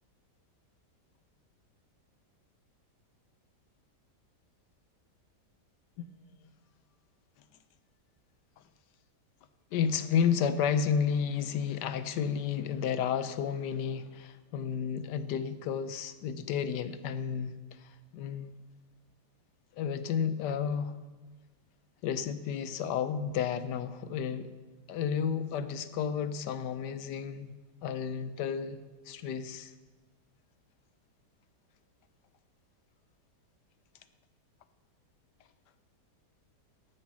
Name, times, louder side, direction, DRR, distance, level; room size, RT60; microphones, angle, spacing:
voice 1, 9.7-18.6 19.8-21.0 22.0-24.5 24.9-27.5 27.8-29.7, left 7 dB, 80° left, 12 dB, 1.3 m, -32 dB
14.0 x 7.7 x 6.2 m, 1.3 s
omnidirectional pair, 1.8 m